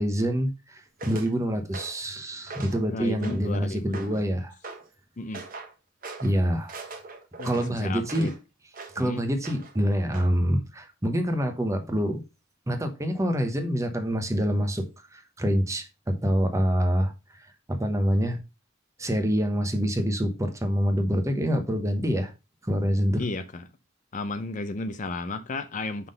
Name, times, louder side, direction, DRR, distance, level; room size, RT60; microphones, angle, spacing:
voice 1, 0.0-4.5 6.2-6.8 7.4-8.3 8.9-12.2 12.7-14.9 15.1-17.4 17.7-18.4 19.0-22.3 22.6-23.3, equal, 15° right, 0.9 m, -26 dB
sound 1, 1.0-1.3 1.7-2.1 2.5-2.9 3.2-3.6 3.9-4.3 4.6-4.9 5.3-5.7 6.0-6.3 6.7-8.4 8.7-9.0 9.4-9.8 10.1-10.3, right 3 dB, 45° right, 1.2 m, -41 dB
voice 2, 2.9-4.2 5.2-5.4 7.4-8.3 9.0-9.2 23.2-23.6 24.1-26.1, left 2 dB, 40° left, 0.5 m, -33 dB
5.9 x 3.8 x 5.1 m
head